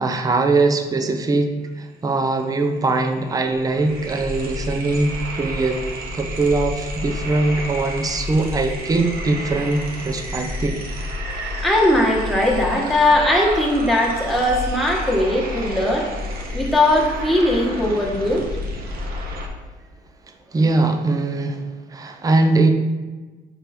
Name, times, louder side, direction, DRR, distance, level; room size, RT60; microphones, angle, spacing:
voice 1, 0.0-5.8 6.1-10.8 20.5-21.6 21.9-22.7, right 3 dB, 20° right, 5 dB, 0.6 m, -21 dB
sound 1, 2.5-2.6 2.8-19.5, left 1 dB, 60° right, 1.0 m, -30 dB
voice 2, 11.4-16.1 16.5-18.5, left 1 dB, ahead, -3 dB, 1.5 m, -19 dB
4.9 x 4.5 x 5.1 m, 1.3 s
cardioid pair, 110°, 17 cm